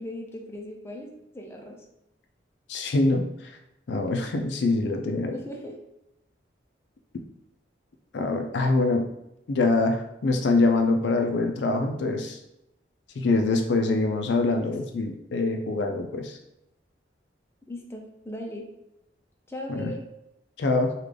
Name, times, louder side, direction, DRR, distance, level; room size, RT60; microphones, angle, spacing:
voice 1, 0.0-1.8 5.3-5.8 17.7-18.7 19.5-20.0, left 1 dB, 15° left, 0 dB, 0.5 m, -38 dB
voice 2, 2.7-3.2 3.9-5.4 8.1-9.1 9.5-12.4 13.2-16.4 19.7-19.9 20.6-20.9, left 3 dB, 70° left, 4 dB, 0.4 m, -24 dB
3.6 x 2.4 x 3.3 m, 0.86 s
head